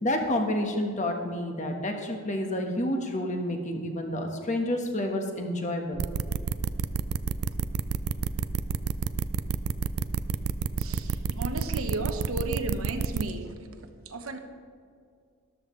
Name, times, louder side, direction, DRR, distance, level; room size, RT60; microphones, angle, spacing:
voice 1, 0.0-6.1, left 1 dB, 35° left, 3 dB, 1.3 m, -29 dB
sound 1, 6.0-13.2, right 6 dB, 90° right, 0.5 m, -29 dB
voice 2, 10.8-13.7 14.0-14.4, right 2 dB, 70° right, 6 dB, 1.1 m, -34 dB
13.5 x 12.5 x 3.2 m, 2.2 s
head